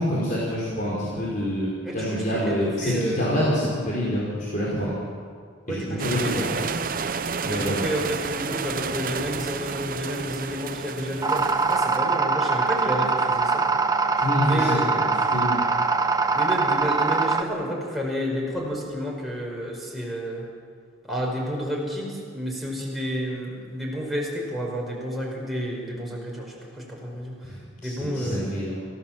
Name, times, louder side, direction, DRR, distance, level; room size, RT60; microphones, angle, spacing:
voice 1, 0.0-5.0 5.7-6.5 7.4-7.8 14.2-15.6 27.4-28.8, equal, 40° left, -6 dB, 4.9 m, -27 dB
voice 2, 1.8-3.3 5.7-6.8 7.5-13.6 14.5-15.0 16.3-20.5 21.1-27.5 27.8-28.5, equal, ahead, -3 dB, 5.2 m, -30 dB
sound 1, 6.0-12.0, right 5 dB, 45° right, 0.7 m, -31 dB
sound 2, 11.2-17.4, right 4 dB, 20° right, 0.9 m, -23 dB
27.5 x 16.0 x 7.6 m, 2.1 s
head